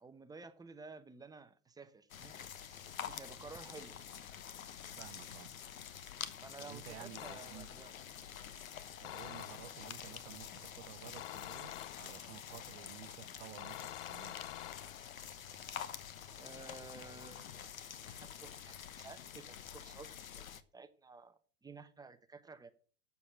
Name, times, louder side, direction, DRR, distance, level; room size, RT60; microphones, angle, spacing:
voice 1, 0.0-2.4 2.7-4.0 6.4-8.2 16.4-17.7 18.1-20.1 20.3-22.7, right 4 dB, 10° right, 0.9 m, -53 dB
sound 1, 2.1-20.6, left 9 dB, 80° left, 1.2 m, -48 dB
voice 2, 5.0-5.5 6.6-7.7 9.0-11.7 12.0-14.3, right 16 dB, 50° right, 0.7 m, -53 dB
sound 2, 7.2-7.9 9.0-9.9 11.2-12.4 13.6-15.2, left 14 dB, 60° left, 0.7 m, -48 dB
8.4 x 7.0 x 7.4 m
hypercardioid pair, 110°, 41 cm